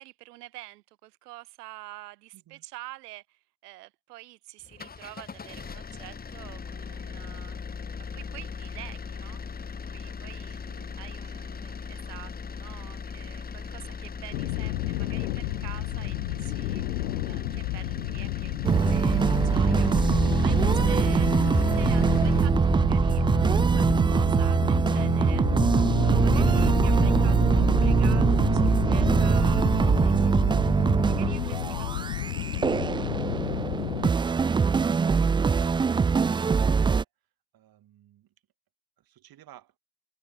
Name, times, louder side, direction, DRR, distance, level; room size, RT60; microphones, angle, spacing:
voice 1, 0.0-7.6 8.0-9.4 9.9-25.5 25.7-32.3, right 18 dB, 75° right, 2.4 m, -47 dB
voice 2, 2.3-2.6 10.6-11.0 11.2-11.9 37.5-38.3 39.0-39.7, right 13 dB, 45° right, 6.6 m, -56 dB
sound 1, 4.6-22.5, left 5 dB, 20° left, 1.5 m, -38 dB
sound 2, 14.3-34.1, left 18 dB, 85° left, 0.6 m, -31 dB
sound 3, 18.6-37.0, right 5 dB, 10° right, 0.4 m, -22 dB
hypercardioid pair, 80°, 47 cm